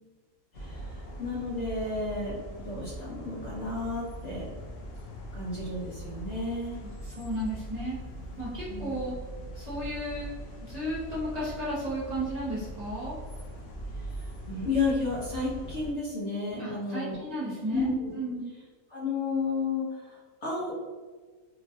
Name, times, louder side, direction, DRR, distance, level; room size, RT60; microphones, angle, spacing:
sound 1, 0.5-15.9, right 1 dB, 85° left, 0.5 m, -41 dB
voice 1, 0.5-2.4 2.6-4.5 5.3-6.8 8.7-8.9 13.9-17.2 17.7-18.1 18.9-20.7, left 3 dB, 60° left, -6 dB, 0.9 m, -32 dB
voice 2, 7.2-8.0 8.4-9.2 9.6-10.3 10.7-13.1 16.6-17.9 18.1-18.4, right 1 dB, 30° right, -10 dB, 0.9 m, -33 dB
2.9 x 2.4 x 2.5 m, 1.4 s
omnidirectional pair, 1.6 m